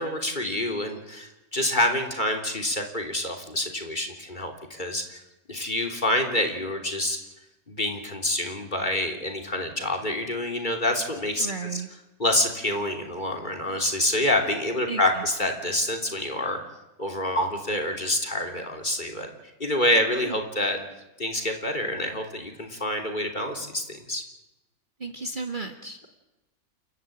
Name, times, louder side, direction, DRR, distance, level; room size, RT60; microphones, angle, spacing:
voice 1, 0.0-5.2 5.5-7.2 7.7-11.5 11.7-11.8 12.2-16.6 17.0-19.3 19.6-20.8 21.2-24.2, left 1 dB, 30° left, 3 dB, 3.4 m, -27 dB
voice 2, 11.4-11.9 14.9-15.2 20.2-20.4 25.0-26.0, right 4 dB, 35° right, 5 dB, 1.8 m, -34 dB
29.5 x 13.0 x 9.0 m, 0.99 s
omnidirectional pair, 1.6 m